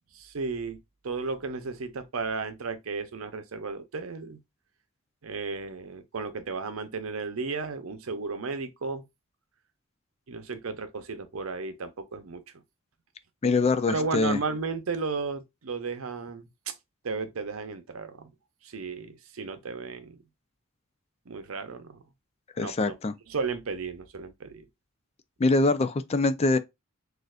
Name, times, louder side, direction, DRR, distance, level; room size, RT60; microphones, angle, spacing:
voice 1, 0.1-4.4 5.2-9.0 10.3-12.4 13.9-16.7 17.0-18.3 18.6-20.2 21.3-22.0 22.6-22.9 23.3-24.7, right 4 dB, 85° right, 0.7 m, -34 dB
voice 2, 13.4-14.4 22.6-23.1 25.4-26.6, left 3 dB, 30° left, 0.4 m, -24 dB
6.4 x 2.5 x 2.4 m
head